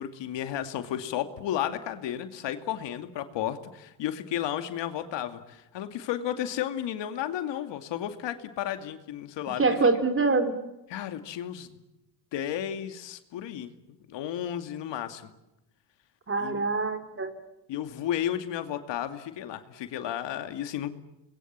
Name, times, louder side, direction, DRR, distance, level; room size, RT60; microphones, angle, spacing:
voice 1, 0.0-9.8 10.9-11.8 12.3-15.3 16.4-16.7 17.7-20.9, left 11 dB, 65° left, 8 dB, 2.5 m, -33 dB
voice 2, 9.6-10.6 16.3-17.4, right 3 dB, 25° right, 8 dB, 3.9 m, -25 dB
28.0 x 22.0 x 7.5 m, 0.93 s
supercardioid pair, 80°, 46 cm